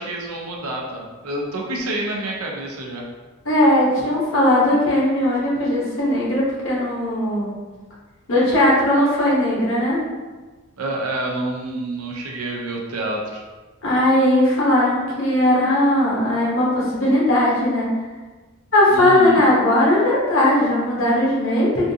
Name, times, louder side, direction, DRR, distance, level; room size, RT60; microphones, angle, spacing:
voice 1, 0.0-3.0 10.8-13.4 18.9-19.5, right 1 dB, 90° right, -1 dB, 0.6 m, -28 dB
voice 2, 3.4-7.5 8.3-10.0 13.8-17.9 18.7-21.9, left 1 dB, 60° left, -6 dB, 1.1 m, -18 dB
3.6 x 2.5 x 2.7 m, 1.3 s
head